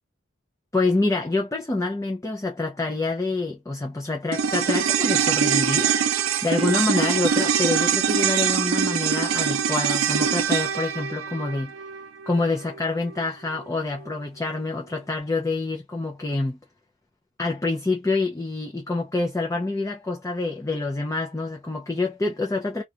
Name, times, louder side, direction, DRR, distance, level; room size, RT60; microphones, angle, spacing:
voice 1, 0.7-6.0 6.4-11.7 12.3-16.6 17.4-22.8, left 3 dB, 15° left, 0.5 m, -26 dB
sound 1, 4.3-12.8 13.1-13.2, right 7 dB, 80° right, 0.5 m, -23 dB
2.5 x 2.3 x 2.8 m
head